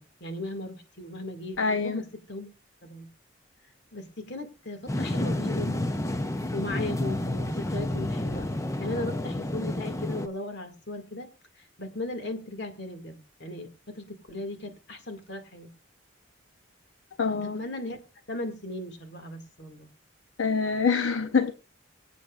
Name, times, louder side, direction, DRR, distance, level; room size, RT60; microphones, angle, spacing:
voice 1, 0.0-2.5 2.8-3.1 3.9-6.2 6.5-8.5 8.8-11.3 11.5-15.7 17.3-18.0 18.3-19.9, left 2 dB, 60° left, 2.1 m, -37 dB
voice 2, 1.6-2.0 17.2-17.6 20.4-21.5, left 5 dB, 75° left, 0.7 m, -25 dB
sound 1, 4.9-10.3, left 1 dB, 15° left, 0.6 m, -30 dB
23.0 x 8.3 x 2.4 m
head